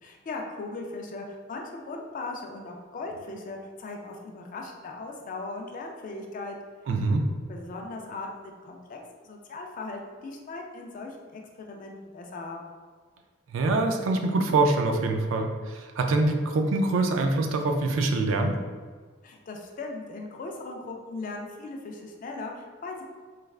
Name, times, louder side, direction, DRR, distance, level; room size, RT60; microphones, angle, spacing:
voice 1, 0.0-6.6 7.5-9.0 9.2-11.4 11.7-12.6 19.2-23.0, left 3 dB, 40° left, 1 dB, 0.3 m, -38 dB
voice 2, 6.9-7.2 13.5-18.6, right 2 dB, 75° right, 4 dB, 0.3 m, -24 dB
3.1 x 2.3 x 2.3 m, 1.5 s
head